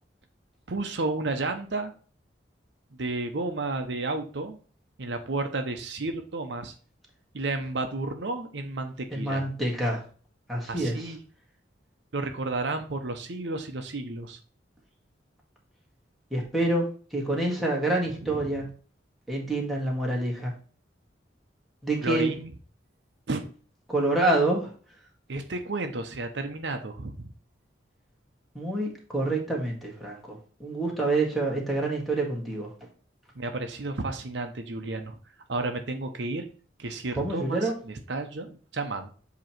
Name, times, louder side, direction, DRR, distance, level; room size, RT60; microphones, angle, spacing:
voice 1, 0.7-1.9 3.0-4.6 5.0-6.7 7.3-9.4 10.7-11.2 12.1-14.4 18.2-18.4 22.0-22.5 23.3-23.4 25.3-27.3 33.4-35.2 35.5-36.5 36.8-39.1, right 2 dB, 65° right, 6 dB, 0.8 m, -32 dB
voice 2, 9.1-10.0 10.5-11.1 16.3-16.8 17.1-18.6 19.3-20.5 21.8-22.3 23.9-24.7 28.5-32.7 37.2-37.7, right 2 dB, ahead, -2 dB, 1.7 m, -27 dB
7.7 x 3.0 x 4.3 m, 0.41 s
head